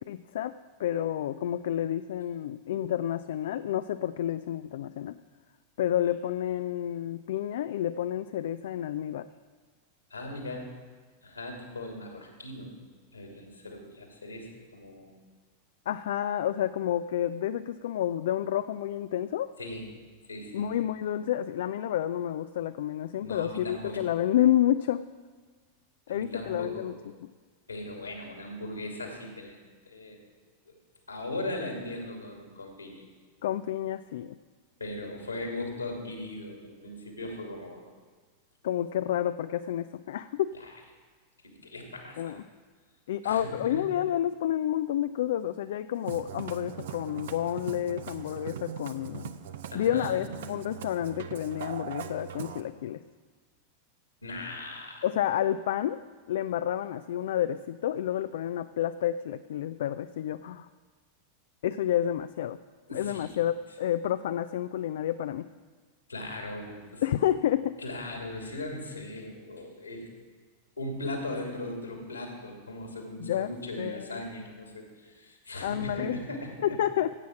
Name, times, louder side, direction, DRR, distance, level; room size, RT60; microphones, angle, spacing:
voice 1, 0.1-0.5 0.8-5.2 5.8-9.3 15.9-19.5 20.5-25.0 26.1-26.9 33.4-34.4 38.6-40.6 42.2-42.4 43.1-49.3 49.7-53.0 55.0-56.0 56.3-60.7 61.6-62.6 62.9-65.5 67.0-67.8 73.2-73.5 73.8-74.2 75.6-76.2 76.6-77.1, left 11 dB, 60° left, 12 dB, 0.4 m, -29 dB
voice 2, 10.1-10.7 11.2-12.7 13.1-15.2 19.6-19.9 20.3-20.7 23.2-24.1 26.1-26.9 27.7-29.6 29.9-30.2 30.6-30.8 31.1-33.0 34.8-37.9 40.5-40.7 41.4-42.4 43.2-43.8 49.7-50.5 54.2-55.1 62.9-63.4 66.1-67.0 67.8-70.1 70.8-76.5, left 1 dB, 80° left, 2 dB, 2.5 m, -38 dB
Musical instrument, 45.9-52.6, right 9 dB, 60° right, 0.7 m, -41 dB
15.5 x 8.2 x 6.0 m, 1.5 s
figure-of-eight pair, 90°, 0 cm